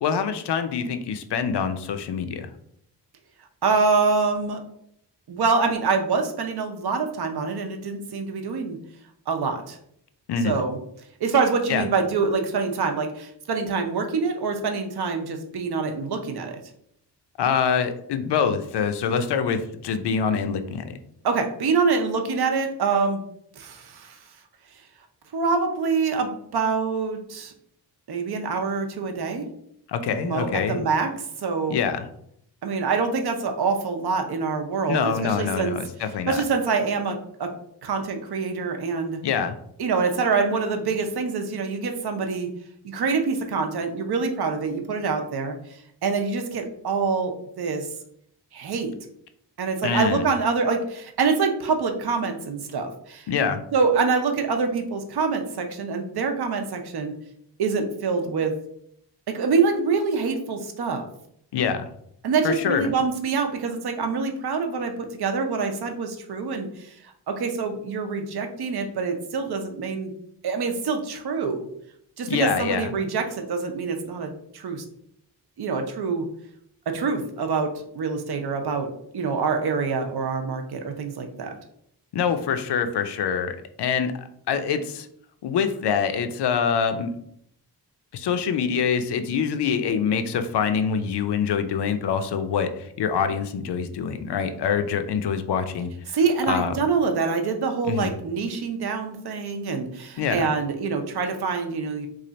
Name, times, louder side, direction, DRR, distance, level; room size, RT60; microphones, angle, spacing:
voice 1, 0.0-2.5 10.3-10.6 11.7-11.9 17.4-21.0 29.9-30.9 31.7-32.1 34.9-36.4 39.2-39.6 49.8-50.3 53.3-53.6 61.5-61.9 62.4-62.9 72.3-72.9 82.1-84.1 84.5-85.1 85.4-87.1 88.1-95.9 96.5-96.8 97.9-98.1 100.2-100.5, left 6 dB, 75° left, 9 dB, 0.5 m, -25 dB
voice 2, 3.6-4.6 5.3-8.8 9.3-9.8 10.4-10.8 11.2-16.6 21.2-23.2 23.6-24.2 25.3-27.5 28.1-29.5 30.2-31.8 32.6-35.8 36.3-37.5 37.8-39.2 39.8-42.5 42.8-47.9 48.5-48.9 49.6-53.3 53.7-57.1 57.6-58.5 59.3-61.1 62.2-70.1 70.4-71.7 72.2-74.8 75.6-76.3 76.9-81.5 96.1-102.1, right 4 dB, 70° right, 5 dB, 0.6 m, -25 dB
3.2 x 2.4 x 3.9 m, 0.70 s
wide cardioid pair, 145°, 40 cm